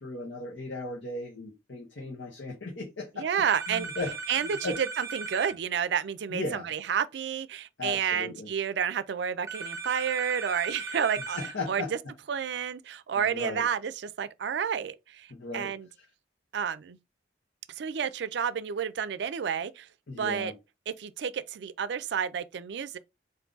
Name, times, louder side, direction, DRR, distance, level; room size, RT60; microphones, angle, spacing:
voice 1, 0.0-4.8 6.3-6.7 7.8-8.5 11.3-11.9 13.1-13.6 15.3-15.7 20.1-20.5, left 2 dB, 85° left, 0.9 m, -37 dB
voice 2, 3.2-3.9 4.3-12.0 12.3-15.9 16.5-17.0 17.8-19.9 20.2-20.5 20.9-23.0, right 7 dB, 65° right, 0.4 m, -30 dB
sound 1, 3.5-5.5 9.5-11.5, right 4 dB, 15° right, 0.7 m, -37 dB
3.6 x 2.6 x 3.8 m
head